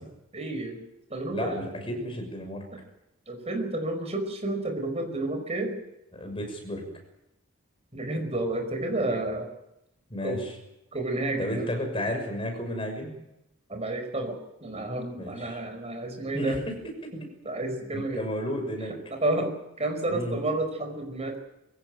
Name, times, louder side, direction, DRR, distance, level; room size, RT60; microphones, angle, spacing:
voice 1, 0.0-0.8 1.1-1.9 2.7-2.8 3.3-5.8 7.9-9.5 10.2-10.4 10.9-11.7 13.7-16.6 17.1-18.3 19.1-21.4, right 2 dB, 30° right, 6 dB, 5.1 m, -31 dB
voice 2, 1.3-2.6 6.1-6.9 10.1-10.5 11.4-13.2 15.2-15.6 16.3-16.7 17.0-17.1 17.9-18.9 20.1-20.4, equal, 25° left, 3 dB, 6.5 m, -32 dB
23.0 x 17.0 x 9.2 m, 0.87 s
head